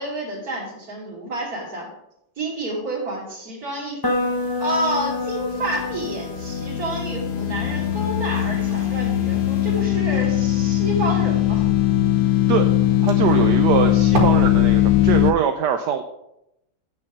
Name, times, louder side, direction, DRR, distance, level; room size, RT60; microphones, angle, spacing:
voice 1, 0.0-1.9 2.4-4.0 4.6-11.7, right 1 dB, 45° right, -3 dB, 3.4 m, -29 dB
sound 1, 4.0-9.8, left 2 dB, 15° left, 1.0 m, -30 dB
sound 2, 5.5-15.3, left 13 dB, 75° left, 1.4 m, -20 dB
sound 3, 7.6-14.2, right 2 dB, 90° right, 2.8 m, -33 dB
voice 2, 13.0-16.0, right 8 dB, 70° right, 7 dB, 1.0 m, -22 dB
8.8 x 6.8 x 5.3 m, 0.83 s
omnidirectional pair, 2.4 m